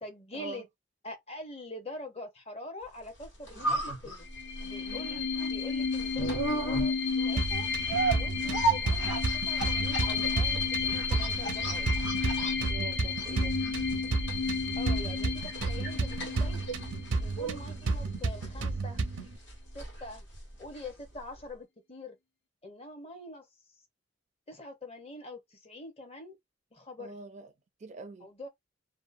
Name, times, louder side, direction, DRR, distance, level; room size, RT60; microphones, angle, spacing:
voice 1, 0.0-0.7 1.0-4.3 4.7-7.7 8.1-11.9 14.8-16.7 17.2-19.0 19.7-20.2 20.6-22.2 22.6-23.5 24.5-26.3 26.7-27.2 28.2-28.5, left 2 dB, 30° left, 0.8 m, -44 dB
sound 1, 3.1-21.1 21.4-21.5, right 2 dB, 80° left, 1.5 m, -36 dB
sound 2, 4.3-17.7, left 5 dB, 60° left, 0.5 m, -33 dB
sound 3, 7.4-19.4, right 3 dB, 85° right, 0.6 m, -33 dB
voice 2, 12.7-13.6 27.0-27.5 27.8-28.3, right 3 dB, 35° right, 0.4 m, -44 dB
2.7 x 2.0 x 2.5 m
head